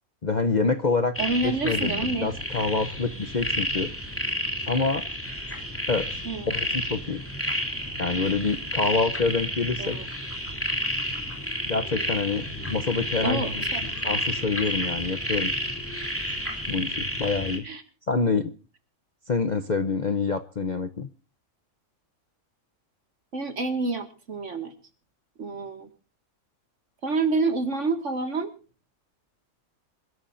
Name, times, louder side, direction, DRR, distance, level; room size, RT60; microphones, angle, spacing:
voice 1, 0.2-1.1 1.4-3.9 4.7-5.1 5.9-6.1 6.5-7.2 8.0-10.0 11.6-13.6 14.0-15.5 16.7-17.6 18.1-18.5 19.3-21.1, left 4 dB, 40° left, 10 dB, 0.7 m, -26 dB
sound 1, 1.2-17.6, equal, 10° left, 3.2 m, -31 dB
voice 2, 1.2-2.3 6.2-6.5 9.8-10.1 13.2-13.8 17.6-17.8 23.3-24.7 25.4-25.9 27.0-28.5, right 3 dB, 55° right, 7 dB, 2.3 m, -28 dB
26.5 x 13.0 x 2.6 m, 0.35 s
omnidirectional pair, 1.5 m